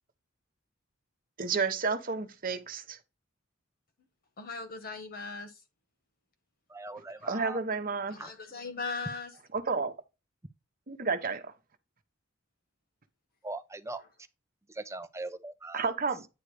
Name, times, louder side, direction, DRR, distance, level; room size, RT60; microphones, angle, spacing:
voice 1, 1.4-3.0 7.2-8.2 9.5-9.9 10.9-11.5 15.7-16.3, right 4 dB, 45° right, 1.1 m, -31 dB
voice 2, 4.4-5.6 7.1-7.2 8.1-9.4 14.0-14.1, left 4 dB, 50° left, 1.6 m, -39 dB
voice 3, 6.7-7.6 13.4-14.0 14.9-15.8, right 2 dB, 15° right, 0.6 m, -40 dB
9.6 x 3.2 x 5.0 m
head